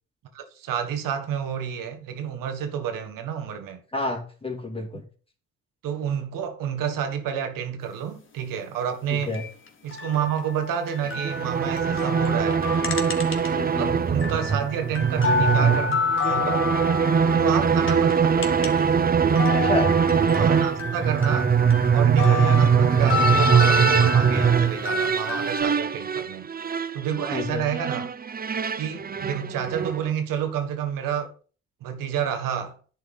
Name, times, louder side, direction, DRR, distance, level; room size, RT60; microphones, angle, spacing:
voice 1, 0.3-3.8 5.8-9.4 9.8-12.7 13.7-16.7 17.3-18.5 20.3-21.5 21.9-26.5 26.9-28.1 28.8-31.3 31.8-32.8, right 8 dB, 75° right, 1.7 m, -29 dB
voice 2, 3.9-5.0 9.1-9.4 13.5-13.9 19.6-19.9 27.3-27.7, left 2 dB, 15° left, 2.5 m, -29 dB
sound 1, 9.2-13.8 14.1-18.9 19.2-25.6, left 4 dB, 35° left, 2.2 m, -29 dB
sound 2, 11.0-30.1, right 6 dB, 25° right, 0.7 m, -22 dB
10.5 x 4.4 x 5.5 m
hypercardioid pair, 50°, 34 cm